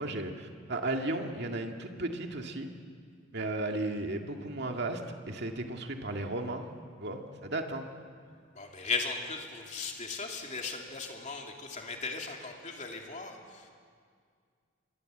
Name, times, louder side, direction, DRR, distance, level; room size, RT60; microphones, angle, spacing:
voice 1, 0.0-2.7 3.3-6.7 7.0-7.9, right 2 dB, 55° right, 3 dB, 2.1 m, -35 dB
voice 2, 8.5-13.7, left 4 dB, 35° left, 1 dB, 2.8 m, -37 dB
27.0 x 22.5 x 7.9 m, 2.1 s
head